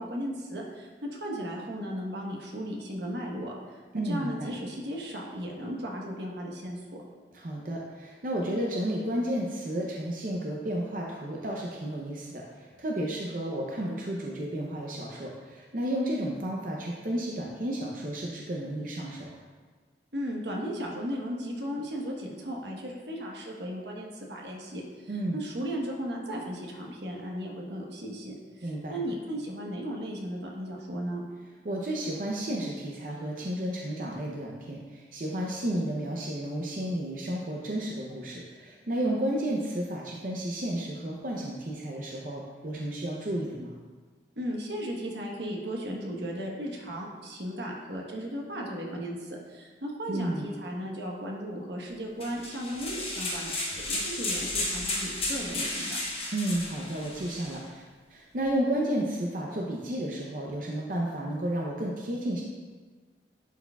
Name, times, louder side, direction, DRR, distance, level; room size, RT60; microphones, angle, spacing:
voice 1, 0.0-7.0 20.1-31.2 44.4-56.0, equal, 80° right, -1 dB, 1.1 m, -36 dB
voice 2, 3.9-4.5 7.3-19.3 25.1-25.4 28.6-29.0 31.6-43.8 50.1-50.5 56.3-57.8 58.1-62.4, right 1 dB, 50° right, -2 dB, 0.6 m, -32 dB
sound 1, 52.2-57.6, left 2 dB, 35° left, 1.1 m, -33 dB
11.0 x 4.6 x 2.3 m, 1.4 s
head